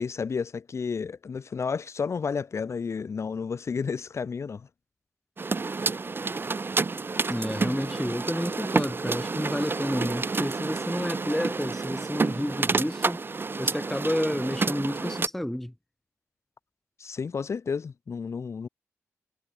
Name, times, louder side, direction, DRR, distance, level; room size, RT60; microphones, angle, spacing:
voice 1, 0.0-4.7 17.0-18.7, left 5 dB, 60° left, 1.5 m, -31 dB
sound 1, 5.4-15.3, right 4 dB, 45° right, 1.4 m, -29 dB
voice 2, 7.3-13.2 13.6-15.7, left 1 dB, 5° left, 0.6 m, -30 dB
cardioid pair, 60°, 5 cm